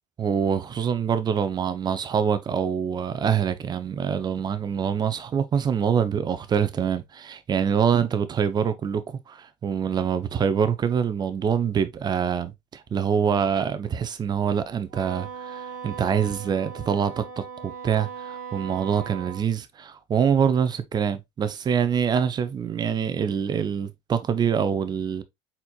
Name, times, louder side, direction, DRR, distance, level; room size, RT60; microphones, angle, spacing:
voice 1, 0.2-25.2, right 7 dB, 30° right, 0.7 m, -25 dB
Wind instrument woodwind instrument, 14.9-19.4, right 6 dB, 70° right, 1.3 m, -38 dB
4.4 x 4.2 x 2.3 m
supercardioid pair, 105°, 14 cm